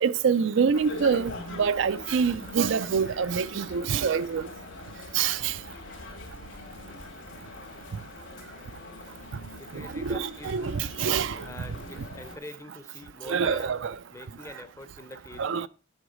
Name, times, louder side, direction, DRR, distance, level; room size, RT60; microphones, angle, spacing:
voice 1, 0.0-4.5 5.1-5.5 9.7-11.4 13.3-14.0 15.4-15.7, right 6 dB, 70° right, 0.4 m, -26 dB
sound 1, 0.7-12.4, left 2 dB, 70° left, 2.2 m, -43 dB
voice 2, 9.6-10.8 11.4-13.8 14.1-15.7, left 2 dB, 15° left, 0.6 m, -44 dB
8.0 x 6.3 x 4.9 m
head